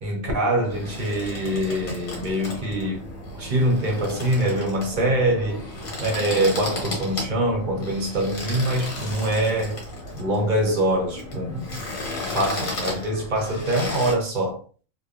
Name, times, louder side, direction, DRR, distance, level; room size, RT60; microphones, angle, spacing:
voice 1, 0.0-3.1 3.4-5.7 6.0-9.8 10.1-11.8 12.3-14.6, right 1 dB, 50° right, 0.6 m, -24 dB
sound 1, 0.7-14.1, left 1 dB, 75° left, 1.3 m, -34 dB
2.9 x 2.0 x 2.4 m
omnidirectional pair, 1.4 m